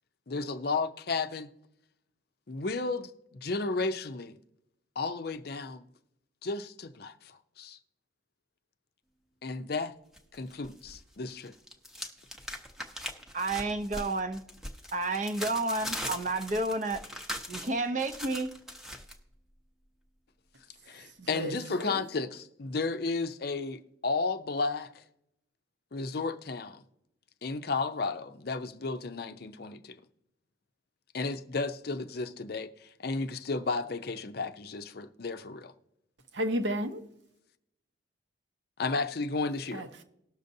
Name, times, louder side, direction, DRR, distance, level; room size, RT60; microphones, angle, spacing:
voice 1, 0.3-1.5 2.5-4.4 5.0-5.9 6.4-7.8 9.4-9.9 10.3-11.5 20.9-25.0 25.9-26.8 27.4-30.0 31.1-35.7 38.8-39.9, left 3 dB, 50° left, 0.5 m, -33 dB
sound 1, 10.1-11.0 11.3-19.1, equal, ahead, 0.7 m, -40 dB
voice 2, 13.3-14.4 14.9-17.0 17.5-18.6, right 2 dB, 40° right, 0.6 m, -30 dB
voice 3, 21.2-22.1 36.3-37.0 39.7-40.0, equal, 65° right, 0.9 m, -33 dB
19.0 x 6.5 x 2.7 m
head